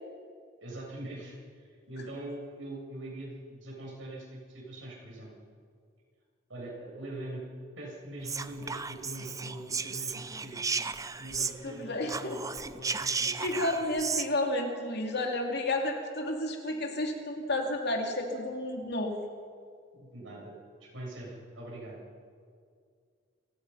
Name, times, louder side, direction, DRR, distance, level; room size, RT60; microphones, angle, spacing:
voice 1, 0.6-5.3 6.5-7.4 7.8-10.6 11.2-12.4 12.7-13.4 19.9-20.5 20.9-22.0, right 1 dB, 75° right, -4 dB, 7.9 m, -42 dB
Whispering, 8.2-11.8 12.0-14.3, right 5 dB, 15° right, 0.6 m, -34 dB
voice 2, 11.6-12.4 13.0-19.2, left 1 dB, 60° left, 2 dB, 2.9 m, -31 dB
29.0 x 16.5 x 5.8 m, 2.2 s
head